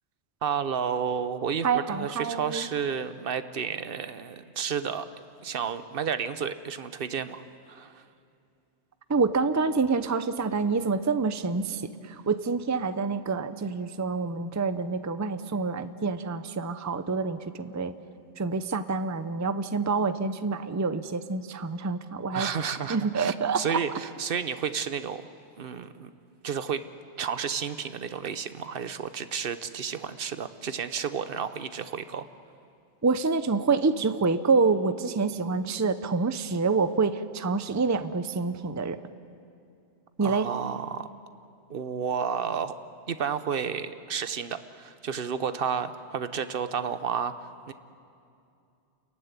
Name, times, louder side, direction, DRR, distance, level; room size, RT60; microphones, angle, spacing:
voice 1, 0.4-5.1 5.4-8.0 22.3-25.2 25.6-26.1 26.4-26.8 27.2-32.3 40.2-41.1 41.7-42.7 43.1-47.3 47.7-47.8, right 7 dB, 55° right, 11 dB, 1.1 m, -31 dB
voice 2, 1.6-2.7 9.1-17.9 18.4-22.5 22.9-23.6 33.0-39.0 40.2-40.5, right 4 dB, 20° right, 11 dB, 0.5 m, -27 dB
29.0 x 15.0 x 9.7 m, 2.6 s
omnidirectional pair, 1.2 m